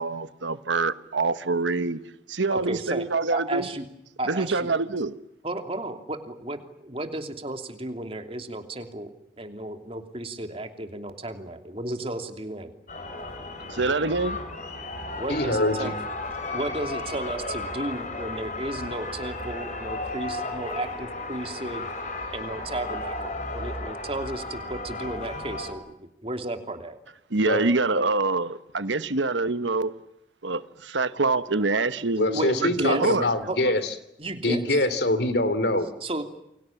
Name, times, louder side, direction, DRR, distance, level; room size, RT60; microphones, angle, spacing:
voice 1, 0.0-2.0 2.3-3.7 4.3-5.1 13.7-14.4 27.3-30.0 30.4-33.3, right 3 dB, 85° right, 13 dB, 1.3 m, -25 dB
voice 2, 2.5-3.9 4.2-4.7 5.4-9.1 9.4-12.7 15.2-15.9 16.5-21.8 22.3-25.9 26.2-27.0 32.3-33.2 33.5-33.7 34.2-34.9 36.0-36.3, right 1 dB, 30° right, 6 dB, 2.9 m, -33 dB
sound 1, 12.9-25.7, left 2 dB, 40° left, 4.5 m, -34 dB
voice 3, 15.3-15.9 27.5-27.6 32.2-33.9 34.4-35.9, left 1 dB, 65° left, 12 dB, 3.1 m, -24 dB
29.0 x 24.0 x 7.3 m, 0.84 s
head